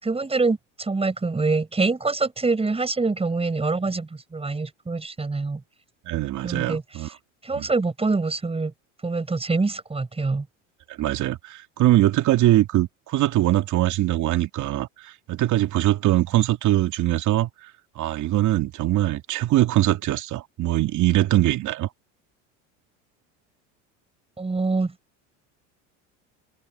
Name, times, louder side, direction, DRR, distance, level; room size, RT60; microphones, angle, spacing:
voice 1, 0.0-5.6 6.4-6.8 7.4-8.7 9.0-10.5 24.4-24.9, right 3 dB, 15° right, 5.5 m, -25 dB
voice 2, 6.1-7.1 7.5-7.7 11.0-17.5 18.0-21.9, right 14 dB, 50° right, 2.7 m, -22 dB
supercardioid pair, 90°, 36 cm